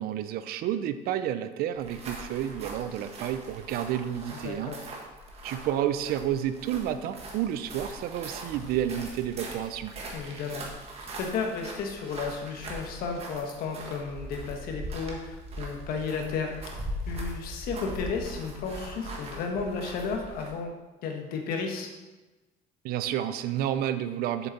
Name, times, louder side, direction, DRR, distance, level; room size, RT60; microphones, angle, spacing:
voice 1, 0.0-4.7 5.4-9.9 22.8-24.5, right 11 dB, 70° right, 11 dB, 0.6 m, -30 dB
sound 1, 1.8-20.6, right 1 dB, 40° right, 1.6 m, -41 dB
voice 2, 4.3-4.8 10.1-10.8 11.2-16.7 17.1-20.7 21.0-21.9, left 5 dB, 65° left, 2 dB, 1.5 m, -33 dB
7.9 x 7.0 x 4.1 m, 1.2 s
cardioid pair, 140°, 16 cm